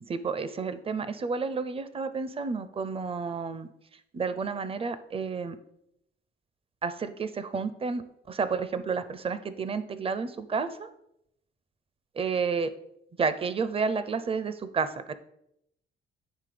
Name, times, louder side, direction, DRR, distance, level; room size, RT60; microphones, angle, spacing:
voice 1, 0.0-3.7 4.1-5.6 6.8-10.9 12.2-12.7 13.2-15.1, right 5 dB, 30° right, 13 dB, 0.6 m, -31 dB
9.5 x 3.3 x 5.0 m, 0.78 s
cardioid pair, 90°, 20 cm